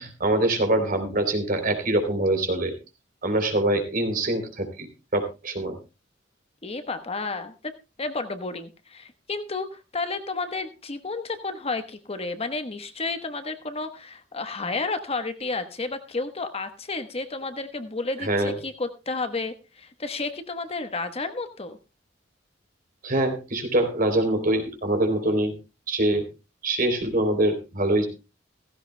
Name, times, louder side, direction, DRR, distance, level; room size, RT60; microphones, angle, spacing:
voice 1, 0.0-2.7 3.2-5.8 18.2-18.6 23.0-25.5 25.9-26.3 26.6-28.1, right 1 dB, 50° right, 6 dB, 3.3 m, -24 dB
voice 2, 6.6-7.5 8.0-21.8, left 3 dB, 35° left, 9 dB, 1.1 m, -31 dB
16.0 x 15.5 x 2.2 m, 0.28 s
head